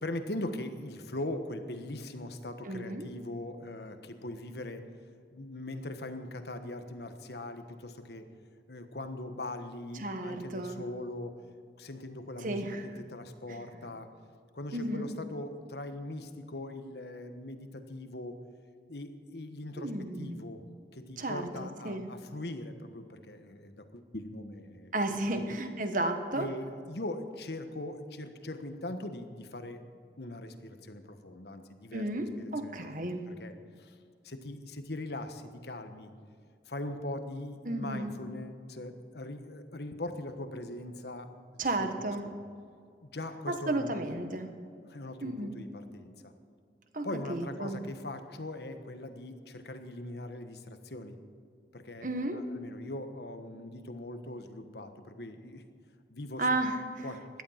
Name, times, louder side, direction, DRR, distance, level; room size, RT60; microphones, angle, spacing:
voice 1, 0.0-4.9 5.3-8.3 8.7-11.3 11.8-14.1 14.5-18.4 18.9-19.9 20.2-20.7 20.9-25.6 26.3-33.5 33.8-34.0 34.2-36.1 36.7-41.2 41.5-42.3 43.0-44.3 44.9-46.3 47.0-51.1 51.7-52.1 52.3-55.6 56.1-56.5 57.0-57.3, left 1 dB, 65° left, 8 dB, 1.3 m, -41 dB
voice 2, 2.6-3.1 10.0-10.8 12.4-12.8 13.5-13.6 14.7-15.1 19.8-20.4 21.2-22.1 24.9-26.5 31.9-33.2 37.6-38.1 41.6-42.2 43.5-44.5 45.2-45.6 46.9-47.8 52.0-52.4 56.4-57.0, right 1 dB, 45° right, 7 dB, 1.4 m, -33 dB
16.5 x 12.0 x 5.8 m, 2.3 s
head